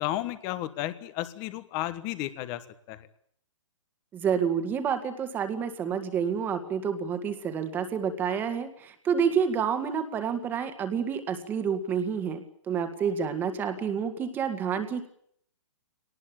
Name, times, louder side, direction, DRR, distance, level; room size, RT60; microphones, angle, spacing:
voice 1, 0.0-2.6 2.9-3.0, left 15 dB, 20° left, 13 dB, 1.4 m, -33 dB
voice 2, 4.1-15.1, right 7 dB, 10° right, 8 dB, 2.0 m, -29 dB
22.0 x 19.5 x 8.8 m, 0.64 s
hypercardioid pair, 165°, 16 cm